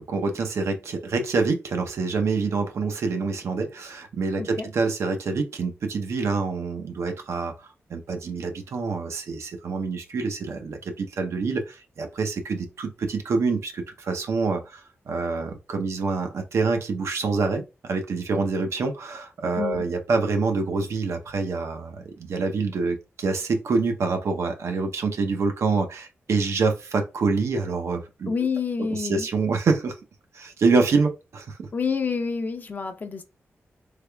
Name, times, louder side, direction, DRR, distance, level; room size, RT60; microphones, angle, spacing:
voice 1, 0.0-14.8 15.1-28.3 28.9-29.9 30.3-31.7, right 4 dB, 80° right, 0.6 m, -26 dB
voice 2, 28.2-29.3 31.7-33.2, left 5 dB, 40° left, 0.5 m, -28 dB
3.4 x 3.3 x 2.2 m
wide cardioid pair, 145°, 5 cm